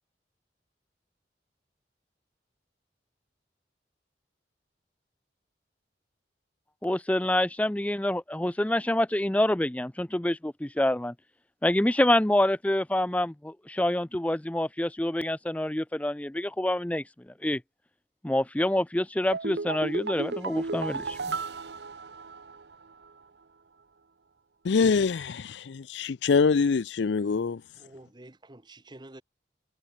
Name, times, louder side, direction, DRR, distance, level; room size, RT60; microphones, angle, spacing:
voice 1, 6.8-11.1 11.6-17.0 17.4-17.6 18.2-21.4, left 1 dB, 10° left, 0.5 m, -27 dB
sound 1, 19.3-22.8 23.0-23.1, right 4 dB, 75° right, 0.9 m, -34 dB
voice 2, 24.6-27.6, left 5 dB, 85° left, 0.5 m, -24 dB
voice 3, 27.8-29.2, right 1 dB, 25° right, 1.1 m, -49 dB
head